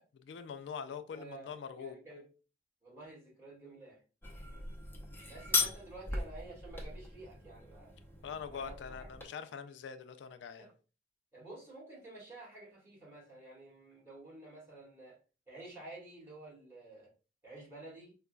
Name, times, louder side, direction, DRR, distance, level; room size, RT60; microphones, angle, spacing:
voice 1, 0.2-2.0 4.4-4.7 8.2-10.7, left 7 dB, 80° left, 0.3 m, -44 dB
voice 2, 1.1-2.3 2.8-4.0 5.2-7.9 8.5-9.1 10.6-10.7 11.3-15.2 15.5-17.1 17.4-18.2, right 2 dB, 15° right, 1.8 m, -51 dB
sound 1, 4.2-9.2, left 3 dB, 15° left, 0.6 m, -38 dB
4.9 x 2.3 x 2.2 m
head